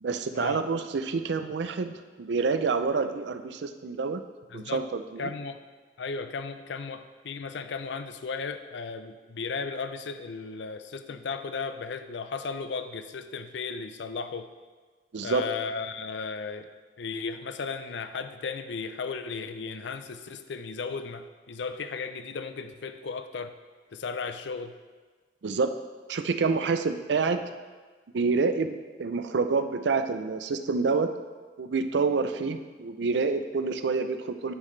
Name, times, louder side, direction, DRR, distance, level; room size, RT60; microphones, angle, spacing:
voice 1, 0.0-4.2 4.5-5.3 15.1-15.4 25.4-25.7 26.1-27.4 28.1-31.1 31.6-34.5, right 4 dB, 70° right, 9 dB, 0.4 m, -27 dB
voice 2, 4.5-4.8 5.2-5.6 6.0-14.5 15.2-16.7 17.0-23.5 23.9-24.7, left 5 dB, 70° left, 10 dB, 0.5 m, -35 dB
9.4 x 5.8 x 3.2 m, 1.4 s
head